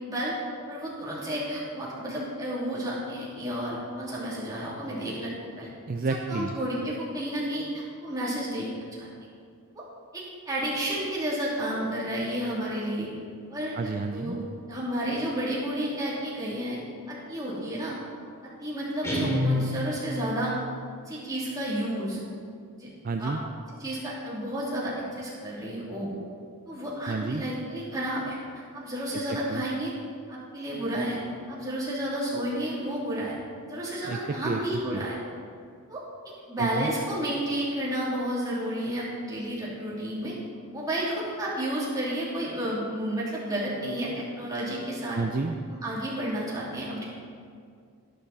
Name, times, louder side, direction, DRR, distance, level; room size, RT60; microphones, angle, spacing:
voice 1, 0.1-0.4 0.7-5.7 6.3-8.7 9.0-9.1 9.7-9.8 10.1-13.1 13.5-13.8 14.1-16.8 17.1-18.0 18.4-20.5 21.1-22.2 22.8-22.9 23.2-23.3 23.8-26.1 26.7-28.4 28.7-29.9 30.3-31.2 31.5-33.3 33.7-35.2 35.9-36.0 36.5-40.3 40.7-45.2 45.7-47.1, right 1 dB, 15° right, -7 dB, 2.9 m, -31 dB
voice 2, 5.9-6.5 13.8-14.4 23.0-23.4 27.1-27.4 29.1-29.6 34.0-34.2 34.4-34.6 34.9-35.0 36.6-36.9 45.1-45.5, right 3 dB, 40° right, 5 dB, 0.4 m, -30 dB
Guitar, 19.0-20.3, left 1 dB, 15° left, 2.3 m, -27 dB
11.5 x 10.5 x 4.1 m, 2.2 s
head